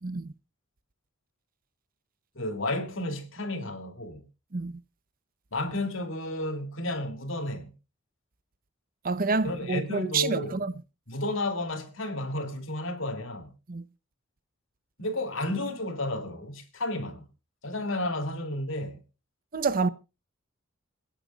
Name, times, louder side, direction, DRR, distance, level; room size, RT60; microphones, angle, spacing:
voice 1, 0.0-0.3 4.5-4.7 9.0-10.7 13.7-13.8 19.5-19.9, right 4 dB, 45° right, 0.7 m, -28 dB
voice 2, 2.3-4.3 5.5-7.7 9.4-10.6 11.1-13.5 15.0-17.3 17.6-19.0, left 1 dB, 65° left, 2.6 m, -32 dB
27.5 x 10.0 x 2.3 m
head